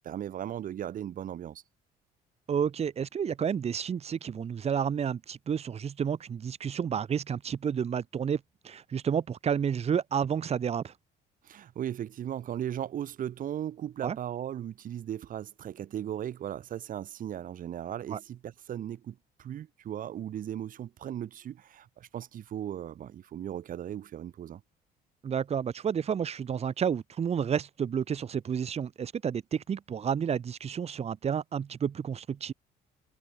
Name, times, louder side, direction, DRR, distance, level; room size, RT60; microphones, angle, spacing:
voice 1, 0.0-1.6 11.4-24.6, right 10 dB, 55° right, 1.7 m, -37 dB
voice 2, 2.5-10.9 14.0-14.2 18.1-18.2 25.2-32.5, right 7 dB, 40° right, 1.5 m, -30 dB
cardioid pair, 110°, 17 cm